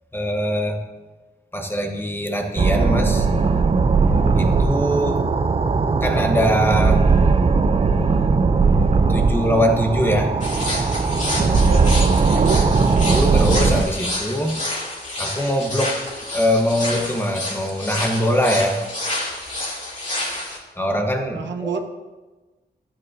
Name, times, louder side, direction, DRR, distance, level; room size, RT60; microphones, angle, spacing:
voice 1, 0.1-0.8 1.5-3.3 4.4-5.3 6.0-7.1 9.1-10.3 13.1-14.6 15.2-16.0 16.3-18.8 20.8-21.8, equal, 10° left, 3 dB, 1.1 m, -22 dB
sound 1, 2.6-13.8, right 4 dB, 35° right, 0.5 m, -18 dB
sound 2, 10.4-20.6, left 1 dB, 45° left, 2.4 m, -29 dB
voice 2, 11.6-12.6 21.3-21.8, right 6 dB, 85° right, 5 dB, 0.8 m, -28 dB
12.5 x 8.8 x 2.7 m, 1.2 s
wide cardioid pair, 100°, 18 cm